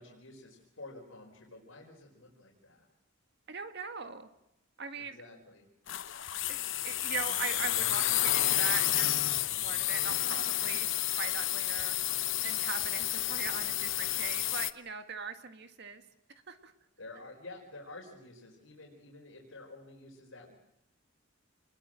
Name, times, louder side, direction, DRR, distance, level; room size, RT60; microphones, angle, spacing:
voice 1, 0.0-2.9 4.9-5.7 17.0-20.5, left 2 dB, 85° left, 0 dB, 4.8 m, -50 dB
voice 2, 3.5-4.3 4.8-5.2 6.5-6.6 6.8-9.2 9.5-10.9 11.2-12.0 12.4-16.0 16.5-16.7, right 6 dB, 55° right, 8 dB, 1.8 m, -40 dB
sound 1, 5.9-14.7, left 14 dB, 65° left, 0.9 m, -30 dB
28.5 x 21.0 x 7.6 m, 0.87 s
head